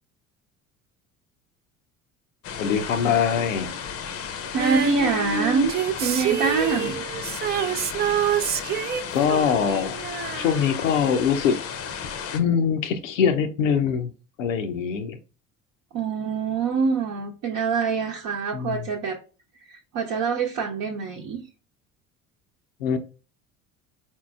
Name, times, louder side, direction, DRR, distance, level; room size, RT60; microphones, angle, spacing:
sound 1, 2.4-12.4, left 7 dB, 35° left, 0.6 m, -34 dB
voice 1, 2.6-3.8 9.1-10.0 10.4-11.6 12.3-14.1 14.4-15.2 18.5-18.8 22.8-23.0, left 7 dB, 80° left, 0.6 m, -23 dB
voice 2, 4.5-5.7 6.0-7.0 15.9-19.2 19.6-21.4, right 5 dB, 50° right, 0.8 m, -25 dB
Female singing, 4.6-11.2 11.5-11.6, right 8 dB, 25° right, 0.4 m, -27 dB
4.4 x 3.9 x 2.3 m
figure-of-eight pair, 60°, 38 cm